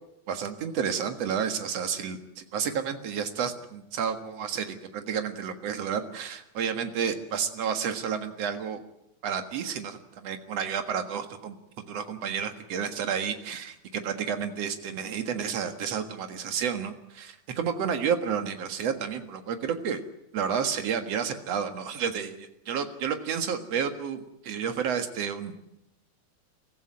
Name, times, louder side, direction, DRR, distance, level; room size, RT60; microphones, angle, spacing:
voice 1, 0.3-8.8 9.2-11.6 11.9-20.0 20.3-25.5, right 7 dB, 55° right, 7 dB, 2.6 m, -31 dB
23.5 x 15.0 x 9.7 m, 0.85 s
omnidirectional pair, 3.6 m